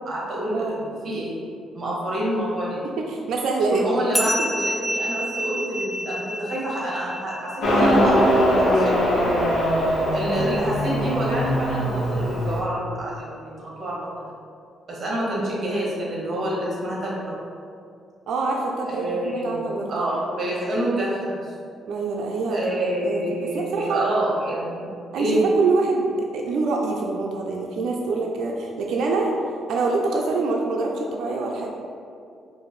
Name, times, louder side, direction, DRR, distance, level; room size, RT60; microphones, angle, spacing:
voice 1, 0.0-1.3 1.7-2.8 3.7-9.0 10.1-14.2 14.9-17.3 18.9-21.5 22.5-24.9 25.1-25.4, right 1 dB, 45° right, -5 dB, 1.2 m, -27 dB
voice 2, 3.0-3.9 10.4-10.6 18.3-19.8 21.9-24.1 25.1-29.3 29.7-31.7, right 3 dB, 70° right, 0 dB, 0.4 m, -25 dB
sound 1, 4.1-9.0, equal, 10° right, 0.4 m, -30 dB
Motorcycle, 7.6-12.6, equal, 75° left, 0.9 m, -21 dB
4.6 x 2.5 x 3.0 m, 2.4 s
cardioid pair, 90°, 0 cm